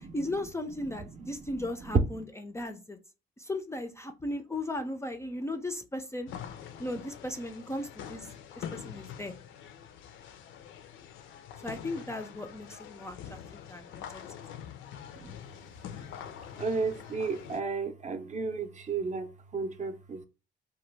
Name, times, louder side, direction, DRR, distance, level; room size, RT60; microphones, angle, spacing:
voice 1, 0.1-3.0 3.4-6.3 6.8-8.3 8.6-9.3 11.6-14.3, left 1 dB, 15° left, 0.4 m, -37 dB
voice 2, 0.9-1.4 1.9-2.2 15.2-15.4 16.6-20.3, right 4 dB, 40° right, 0.5 m, -32 dB
sound 1, 6.3-17.6, left 9 dB, 80° left, 0.4 m, -45 dB
2.9 x 2.1 x 3.2 m
cardioid pair, 90°, 20 cm